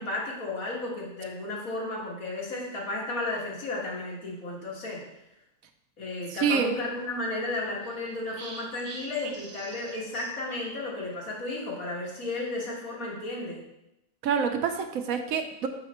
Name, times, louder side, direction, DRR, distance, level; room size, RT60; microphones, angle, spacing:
voice 1, 0.0-5.0 6.0-13.6, left 2 dB, 75° left, -4 dB, 2.1 m, -33 dB
voice 2, 6.3-6.7 14.2-15.7, right 6 dB, 75° right, 6 dB, 1.1 m, -27 dB
sound 1, 6.5-11.5, right 3 dB, 50° right, 0.8 m, -46 dB
6.1 x 5.0 x 4.2 m, 0.87 s
omnidirectional pair, 1.5 m